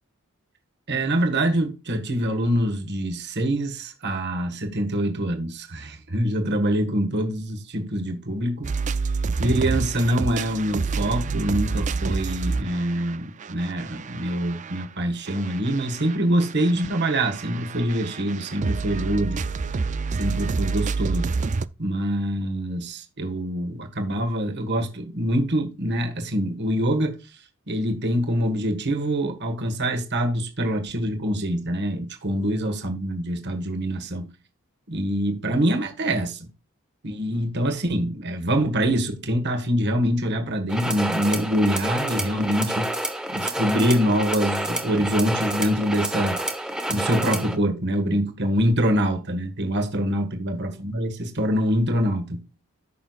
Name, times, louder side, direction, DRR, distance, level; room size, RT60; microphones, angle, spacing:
voice 1, 0.9-8.7 9.4-19.4 19.7-19.8 20.1-21.3 21.8-27.2 27.7-34.3 34.9-36.5 37.0-42.9 43.3-46.4 46.9-52.4, equal, 50° right, 1.6 m, -25 dB
sound 1, 8.6-14.8 15.3-21.7, right 4 dB, 35° right, 0.4 m, -28 dB
sound 2, 40.7-47.6, right 1 dB, 5° right, 1.2 m, -28 dB
14.0 x 6.3 x 2.4 m
head